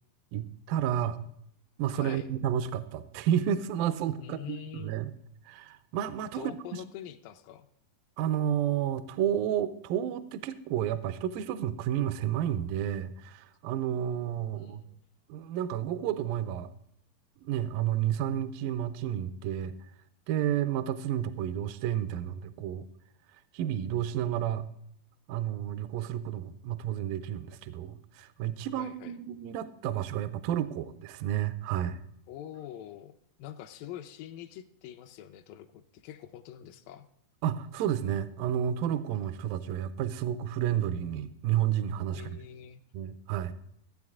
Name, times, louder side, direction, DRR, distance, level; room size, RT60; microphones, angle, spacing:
voice 1, 0.3-1.2 1.8-5.1 5.5-6.5 8.2-14.8 15.3-16.7 17.4-19.7 20.3-22.8 23.5-24.7 25.3-32.0 37.4-42.4 42.9-43.5, right 10 dB, 80° right, 12 dB, 2.2 m, -31 dB
voice 2, 1.9-2.3 4.2-4.9 6.3-7.7 14.4-15.0 28.7-29.1 32.3-37.0 42.1-42.8, left 11 dB, 80° left, 4 dB, 2.1 m, -45 dB
15.0 x 8.5 x 3.6 m, 0.70 s
omnidirectional pair, 4.4 m